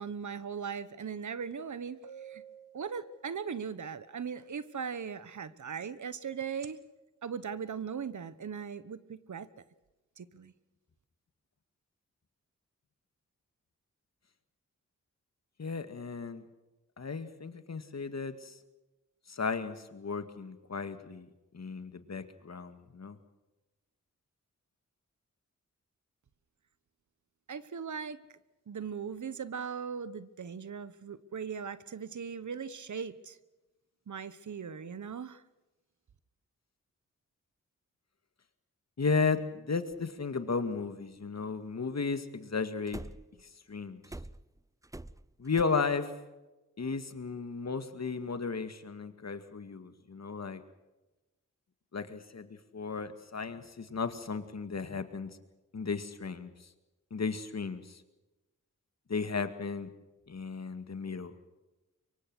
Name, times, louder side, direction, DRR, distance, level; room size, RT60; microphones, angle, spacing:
voice 1, 0.0-2.0 2.2-2.4 2.7-6.8 7.2-9.5 10.2-10.5 27.5-28.2 28.7-33.4 34.1-35.4, right 6 dB, 65° right, 15 dB, 1.2 m, -39 dB
sound 1, 1.5-1.6 2.0-3.8 6.4-6.7, right 8 dB, 80° right, 1.5 m, -51 dB
voice 2, 15.6-16.4 17.0-18.5 19.3-21.3 21.5-23.2 39.0-43.0 43.7-44.0 45.4-46.1 46.8-50.6 51.9-55.3 55.7-56.5 57.1-58.0 59.1-59.9 60.3-61.3, left 4 dB, 55° left, 9 dB, 2.1 m, -34 dB
sound 2, 39.9-40.0 42.9-43.4 44.0-45.6, right 2 dB, 10° right, 0.7 m, -44 dB
24.5 x 23.5 x 6.3 m, 1.1 s
cardioid pair, 50°, 32 cm